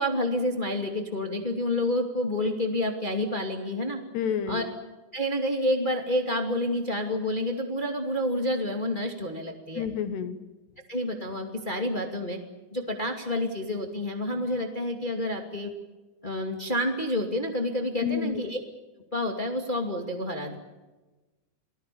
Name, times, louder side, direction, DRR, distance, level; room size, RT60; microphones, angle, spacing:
voice 1, 0.0-4.0 4.5-4.6 5.1-9.9 10.9-12.4 12.7-15.7 16.2-18.6 19.1-20.6, left 1 dB, 30° left, 3 dB, 0.9 m, -29 dB
voice 2, 4.1-4.7 9.7-10.4 18.0-18.4, left 7 dB, 70° left, 9 dB, 3.1 m, -29 dB
30.0 x 21.0 x 7.0 m, 1.1 s
omnidirectional pair, 5.6 m